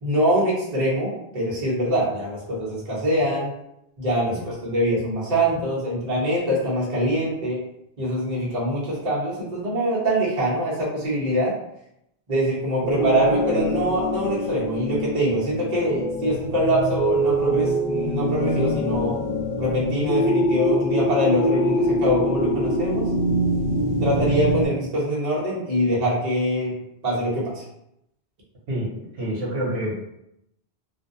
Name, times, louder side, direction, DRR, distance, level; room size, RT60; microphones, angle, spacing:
voice 1, 0.0-3.5 4.0-7.6 8.0-11.5 12.3-19.2 19.6-23.1 24.0-26.7 27.0-27.6, equal, 40° right, -6 dB, 0.9 m, -24 dB
sound 1, 12.8-24.7, equal, 60° left, 0.6 m, -24 dB
voice 2, 28.7-30.0, right 1 dB, 70° right, -5 dB, 1.0 m, -28 dB
2.5 x 2.1 x 2.6 m, 0.81 s
omnidirectional pair, 1.1 m